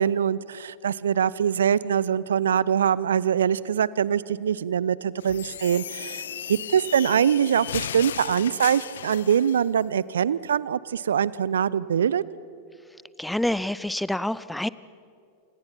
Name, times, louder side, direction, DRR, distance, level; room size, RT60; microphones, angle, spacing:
voice 1, 0.0-12.2, right 8 dB, 65° right, 21 dB, 0.6 m, -23 dB
sound 1, 5.2-9.6, left 10 dB, 65° left, 0.5 m, -36 dB
voice 2, 13.2-14.7, left 1 dB, 5° left, 18 dB, 0.6 m, -27 dB
28.5 x 26.5 x 5.9 m, 2.5 s
figure-of-eight pair, 90°, 0 cm